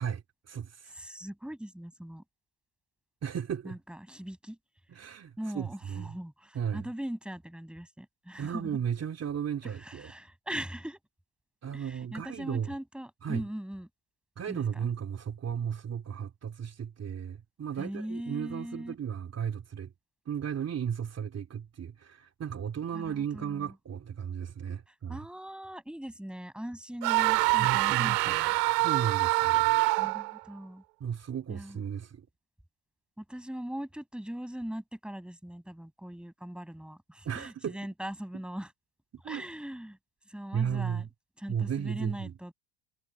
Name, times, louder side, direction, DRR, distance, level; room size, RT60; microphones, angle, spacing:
voice 1, 0.0-0.9 3.2-3.8 4.9-6.1 6.5-6.8 8.4-10.1 11.6-12.7 13.2-13.4 14.4-19.9 20.3-25.2 27.6-28.4 28.8-29.8 31.0-32.3 37.2-37.8 39.2-39.4 40.5-41.1 41.5-42.3, right 8 dB, 30° right, 3.0 m, -35 dB
voice 2, 0.9-2.2 3.6-4.6 5.4-8.8 9.6-11.0 11.7-13.9 14.5-14.9 17.8-18.9 22.9-23.7 24.9-28.5 30.0-30.8 31.5-31.9 33.2-38.7 39.2-40.0 40.3-41.1 41.4-42.5, equal, ahead, 6.5 m, -40 dB
sound 1, 27.0-30.4, right 23 dB, 85° right, 2.7 m, -25 dB
supercardioid pair, 100°, 47 cm